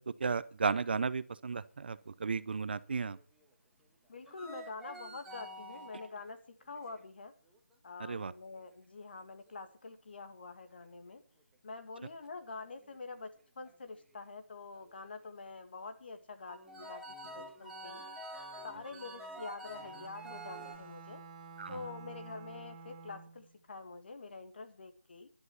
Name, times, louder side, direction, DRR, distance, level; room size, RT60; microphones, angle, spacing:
voice 1, 0.0-3.2 8.0-8.3 21.6-21.8, right 5 dB, 45° right, 17 dB, 0.7 m, -34 dB
sound 1, 3.2-3.4 4.3-6.2 6.7-7.0 7.5-7.7 8.1-8.2 8.5-8.6 12.7-13.0 13.4-13.5 13.7-13.9 14.7-15.0 16.4-20.8, right 1 dB, 5° right, 1.5 m, -47 dB
voice 2, 4.1-6.4 6.6-7.3 7.8-11.2 11.6-13.3 13.6-18.0 18.6-21.2 21.7-25.3, left 3 dB, 45° left, 8 dB, 2.0 m, -46 dB
Bowed string instrument, 19.8-23.6, right 4 dB, 20° right, 2.9 m, -51 dB
11.0 x 9.6 x 7.0 m, 0.39 s
figure-of-eight pair, 160°, 8 cm